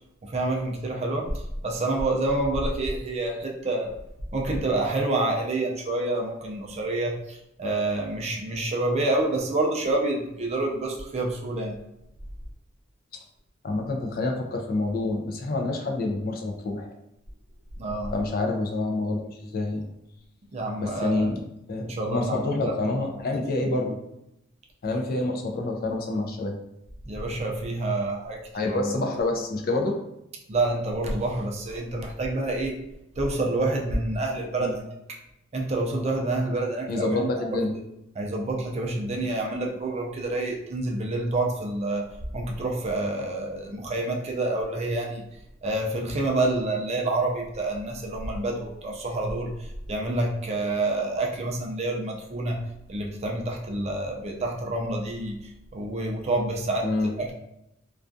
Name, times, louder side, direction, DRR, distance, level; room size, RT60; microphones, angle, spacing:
voice 1, 0.2-3.9 4.3-11.8 17.8-18.1 20.5-21.3 21.8-23.1 27.1-29.1 30.5-32.8 33.2-34.9 35.5-37.6 38.2-45.2 45.6-52.6 52.9-56.9 57.2-57.3, right 2 dB, 30° right, 0 dB, 0.4 m, -28 dB
voice 2, 13.6-16.9 18.1-19.9 20.8-21.4 21.7-24.0 24.8-26.6 28.5-29.9 34.6-34.7 36.9-37.7 56.8-57.1, left 2 dB, 45° left, 2 dB, 0.4 m, -27 dB
2.3 x 2.3 x 2.5 m, 0.83 s
head